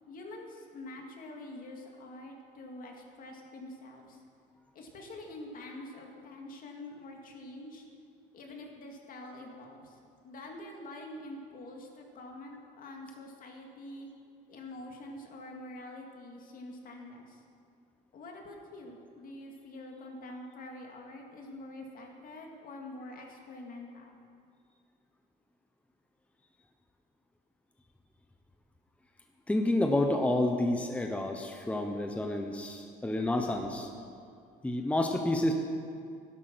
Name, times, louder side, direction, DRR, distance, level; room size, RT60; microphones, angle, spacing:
voice 1, 0.1-4.2 4.7-7.8 8.3-14.1 14.5-17.4 18.1-24.2, left 1 dB, 55° left, 1 dB, 2.4 m, -46 dB
voice 2, 29.5-33.9 34.6-35.5, left 1 dB, 10° left, 4 dB, 0.9 m, -29 dB
12.0 x 12.0 x 6.1 m, 2.3 s
cardioid pair, 110°, 17 cm